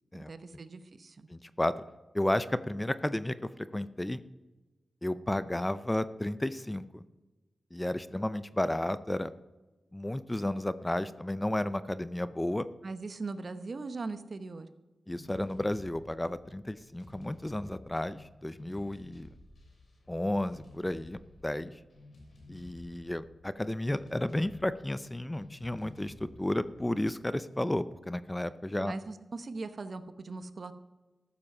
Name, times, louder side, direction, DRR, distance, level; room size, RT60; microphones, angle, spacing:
voice 1, 0.2-1.3 12.8-14.7 28.8-30.7, right 3 dB, 55° right, 11 dB, 0.9 m, -40 dB
voice 2, 1.3-1.7 2.1-4.2 5.0-7.0 7.7-9.3 9.9-12.7 15.1-19.3 20.1-21.7 22.5-28.9, left 1 dB, 15° left, 14 dB, 0.6 m, -32 dB
sound 1, 15.1-27.8, left 2 dB, 65° left, 3.2 m, -54 dB
14.0 x 7.3 x 5.5 m, 1.2 s
cardioid pair, 60°, 0 cm